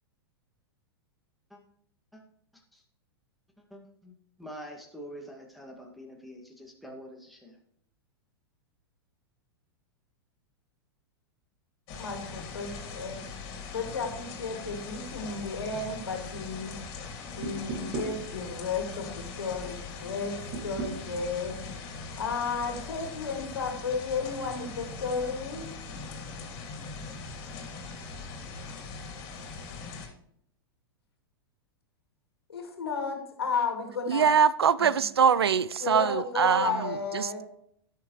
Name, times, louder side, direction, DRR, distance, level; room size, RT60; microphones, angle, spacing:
voice 1, 3.7-4.1 4.4-7.6, equal, ahead, 1 dB, 2.2 m, -45 dB
sound 1, 11.9-30.1, left 4 dB, 40° left, 3.1 m, -41 dB
voice 2, 12.0-13.2 13.7-16.7 17.4-21.6 22.2-25.7 32.5-34.2 35.8-37.4, left 4 dB, 75° left, 3 dB, 2.5 m, -33 dB
sound 2, 17.4-18.2 20.5-21.0, right 4 dB, 35° right, 1.9 m, -34 dB
voice 3, 34.1-37.4, right 7 dB, 80° right, 19 dB, 0.5 m, -23 dB
17.0 x 6.7 x 3.2 m, 0.69 s
figure-of-eight pair, 100°, 13 cm